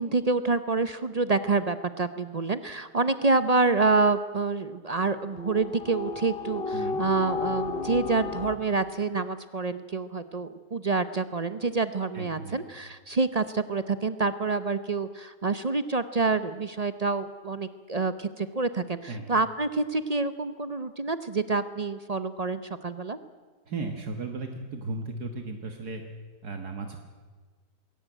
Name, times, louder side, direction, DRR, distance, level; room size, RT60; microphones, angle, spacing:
voice 1, 0.0-23.2, right 3 dB, 50° right, 12 dB, 0.4 m, -27 dB
sound 1, 5.3-8.6, left 4 dB, 35° left, 1.5 m, -32 dB
voice 2, 12.1-12.6 19.1-19.3 23.7-26.0 26.4-27.0, right 3 dB, 65° right, 4 dB, 2.0 m, -35 dB
21.5 x 17.5 x 9.1 m, 1.5 s
omnidirectional pair, 1.8 m